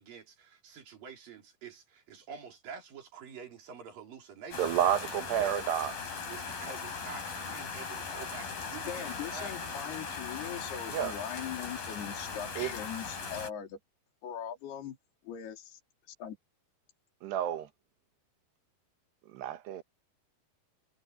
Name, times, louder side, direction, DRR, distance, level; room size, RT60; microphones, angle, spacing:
voice 1, 0.0-5.6 6.3-9.8, right 6 dB, 60° right, 5.1 m, -48 dB
sound 1, 4.5-13.5, left 5 dB, 60° left, 7.1 m, -39 dB
voice 2, 4.6-5.9 10.9-11.1 12.6-12.7 17.2-17.7 19.3-19.8, right 10 dB, 90° right, 3.5 m, -30 dB
voice 3, 8.9-13.8 14.2-15.0 15.2-15.8 16.1-16.4, left 9 dB, 75° left, 5.0 m, -40 dB
omnidirectional pair, 4.7 m